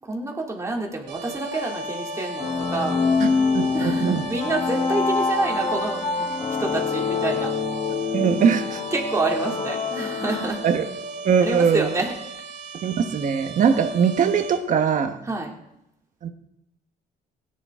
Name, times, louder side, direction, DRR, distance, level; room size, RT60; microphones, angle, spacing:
voice 1, 0.0-3.0 3.7-7.5 8.9-10.6 11.4-12.1 15.2-15.6, right 2 dB, 20° right, 0 dB, 2.9 m, -28 dB
sound 1, 1.1-14.6, right 4 dB, 80° right, 2.9 m, -37 dB
Wind instrument woodwind instrument, 1.5-6.4, left 6 dB, 50° left, 2.8 m, -38 dB
sound 2, 2.4-11.0, left 4 dB, 30° left, 1.6 m, -26 dB
voice 2, 3.2-4.2 8.1-8.8 10.6-10.8 11.2-11.9 12.8-15.2 16.2-16.3, right 7 dB, 50° right, 6 dB, 1.4 m, -21 dB
17.0 x 10.0 x 3.8 m, 0.85 s
cardioid pair, 110°, 17 cm